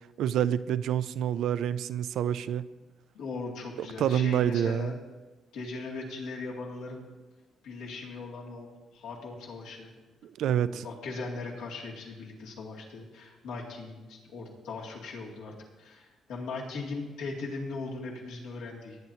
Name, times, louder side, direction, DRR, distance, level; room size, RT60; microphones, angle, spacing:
voice 1, 0.0-2.7 3.8-4.9 10.2-10.9, right 10 dB, 80° right, 0.4 m, -28 dB
voice 2, 3.1-5.0 5.5-7.0 7.6-9.9 10.6-19.0, left 3 dB, 90° left, 2.4 m, -39 dB
19.5 x 9.1 x 2.8 m
cardioid pair, 90°, 0 cm